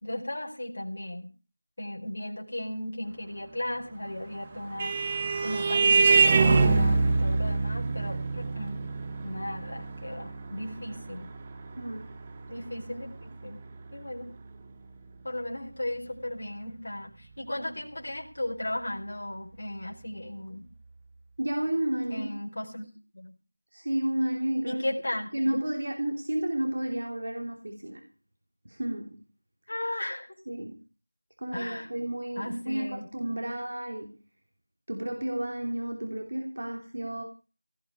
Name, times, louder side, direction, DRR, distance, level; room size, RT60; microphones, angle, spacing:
voice 1, 0.0-1.3 1.8-5.0 5.4-8.8 9.2-11.3 12.5-13.1 13.4-13.6 13.9-14.3 15.2-20.7 22.1-22.9 23.1-23.3 24.6-25.6 29.7-30.3 31.5-31.9 32.3-33.1, left 1 dB, 45° left, 0 dB, 4.5 m, -36 dB
Vehicle horn car horn honking, 4.2-13.2, right 4 dB, 15° right, 0.9 m, -25 dB
voice 2, 11.8-12.1 21.4-22.3 23.7-25.0 25.3-28.0 28.6-29.2 30.5-30.8 31.4-34.2 34.9-37.2, right 1 dB, 50° right, 3 dB, 3.0 m, -31 dB
18.0 x 8.0 x 8.4 m, 0.36 s
figure-of-eight pair, 175°, 0 cm